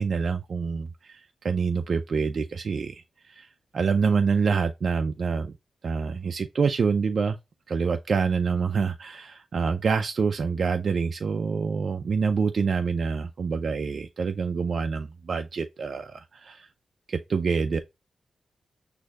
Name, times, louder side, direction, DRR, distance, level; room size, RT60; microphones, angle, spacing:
voice 1, 0.0-3.5 3.7-5.5 5.8-7.4 7.7-16.7 17.1-17.8, right 5 dB, 70° right, 0.4 m, -26 dB
6.3 x 2.7 x 2.4 m
cardioid pair, 60°, 0 cm